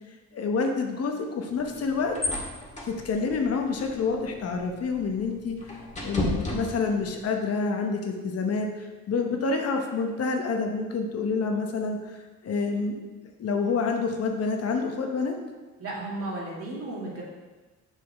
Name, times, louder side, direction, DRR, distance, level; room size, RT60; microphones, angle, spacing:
voice 1, 0.3-2.2 2.8-5.6 6.0-13.0 13.4-15.4, left 4 dB, 55° left, 3 dB, 0.9 m, -28 dB
sound 1, 1.5-7.2, left 1 dB, 25° left, 1.9 m, -35 dB
voice 2, 15.8-17.2, right 2 dB, 50° right, -4 dB, 2.3 m, -34 dB
6.7 x 6.2 x 3.5 m, 1.2 s
cardioid pair, 90°, 30 cm